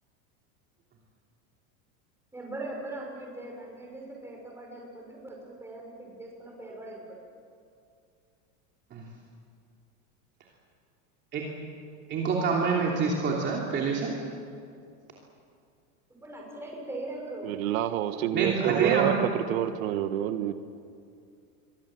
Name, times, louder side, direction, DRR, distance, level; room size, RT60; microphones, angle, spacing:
voice 1, 2.3-7.2 16.2-17.6, right 2 dB, 5° right, -1 dB, 6.2 m, -40 dB
voice 2, 12.1-14.1 18.3-19.1, right 5 dB, 25° right, -2 dB, 3.0 m, -26 dB
voice 3, 17.4-20.5, right 11 dB, 85° right, 9 dB, 1.6 m, -28 dB
29.0 x 24.0 x 7.8 m, 2.4 s
supercardioid pair, 165°, 40 cm